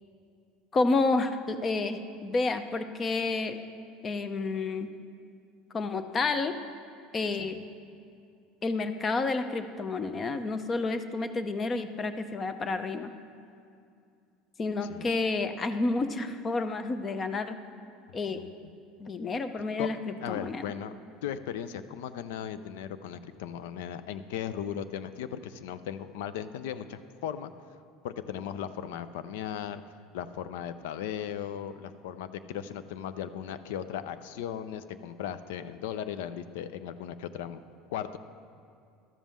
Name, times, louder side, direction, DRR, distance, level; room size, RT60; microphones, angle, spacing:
voice 1, 0.7-3.6 4.0-4.9 5.7-6.5 7.1-7.5 8.6-13.1 14.6-17.5 18.1-18.4 19.0-20.7, left 3 dB, 25° left, 10 dB, 0.5 m, -30 dB
voice 2, 20.2-20.9 21.2-27.5 28.0-29.8 30.1-37.6 37.9-38.2, left 9 dB, 90° left, 13 dB, 0.5 m, -37 dB
12.0 x 5.4 x 7.4 m, 2.5 s
cardioid pair, 145°, 0 cm